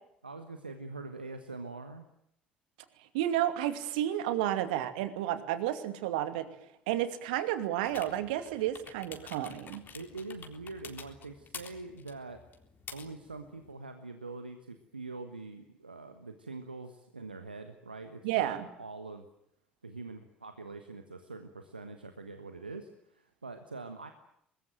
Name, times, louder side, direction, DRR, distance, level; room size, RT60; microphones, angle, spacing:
voice 1, 0.2-2.1 9.9-12.4 12.9-19.3 19.8-24.1, right 3 dB, 90° right, 8 dB, 1.4 m, -44 dB
voice 2, 3.1-6.5 6.9-9.8 18.2-18.7, right 12 dB, 70° right, 10 dB, 2.5 m, -31 dB
sound 1, 7.8-13.7, left 6 dB, 40° left, 3.8 m, -50 dB
24.5 x 21.0 x 9.1 m, 0.75 s
figure-of-eight pair, 60°, 5 cm